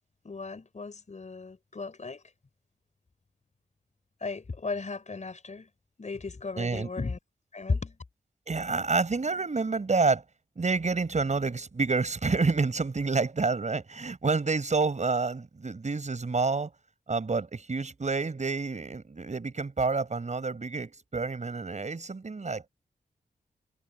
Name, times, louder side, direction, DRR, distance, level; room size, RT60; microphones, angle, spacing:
voice 1, 0.2-2.2 4.2-5.7 6.0-7.2 7.5-8.0, left 4 dB, 50° left, 5.4 m, -35 dB
voice 2, 6.6-6.9 8.5-10.2 10.6-16.7 17.1-22.7, right 4 dB, 45° right, 6.3 m, -28 dB
cardioid pair, 50°, 16 cm